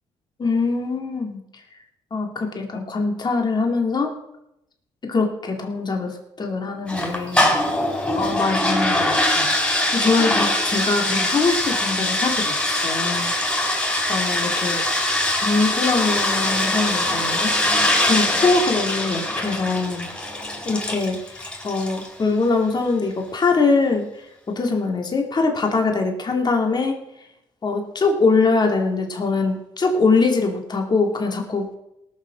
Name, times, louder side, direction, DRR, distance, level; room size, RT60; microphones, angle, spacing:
voice 1, 0.4-1.4 2.1-4.1 5.0-7.5 8.2-14.8 15.4-17.5 18.0-20.1 20.6-21.4 21.6-27.0 27.6-31.8, left 3 dB, 40° left, 2 dB, 2.6 m, -23 dB
sound 1, 6.9-22.1, left 1 dB, 10° left, 4.4 m, -22 dB
18.5 x 6.6 x 6.4 m, 0.83 s
cardioid pair, 80°, 12 cm